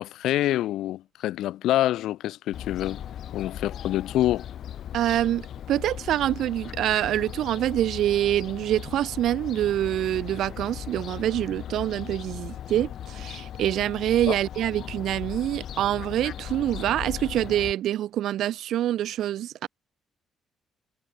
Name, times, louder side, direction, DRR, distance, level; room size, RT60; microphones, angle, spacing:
voice 1, 0.0-3.0 3.3-4.5 14.3-14.4, left 14 dB, 85° left, 0.9 m, -26 dB
Fowl, 2.5-17.7, left 10 dB, 60° left, 2.4 m, -38 dB
voice 2, 4.9-19.7, right 12 dB, 75° right, 1.2 m, -26 dB
cardioid pair, 125°, 0 cm